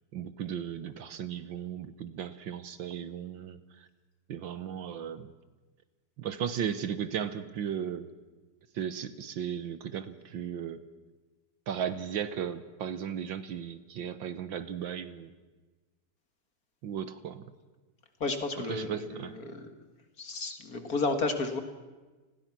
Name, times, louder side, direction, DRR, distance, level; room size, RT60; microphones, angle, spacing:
voice 1, 0.1-3.9 4.3-5.3 6.2-8.1 8.7-10.8 11.7-15.3 16.8-17.4 18.7-19.4, right 8 dB, 65° right, 13 dB, 1.6 m, -36 dB
voice 2, 18.2-19.7 20.2-21.6, left 3 dB, 45° left, 7 dB, 2.2 m, -32 dB
29.5 x 20.5 x 6.0 m, 1.2 s
omnidirectional pair, 2.4 m